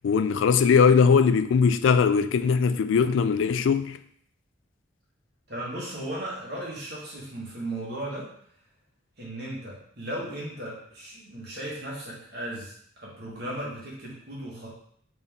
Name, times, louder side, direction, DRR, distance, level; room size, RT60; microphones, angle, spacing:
voice 1, 0.0-4.0, left 6 dB, 75° left, 0.3 m, -20 dB
voice 2, 5.5-8.3 9.2-14.7, right 1 dB, 55° right, 1.7 m, -36 dB
3.9 x 3.8 x 3.6 m
head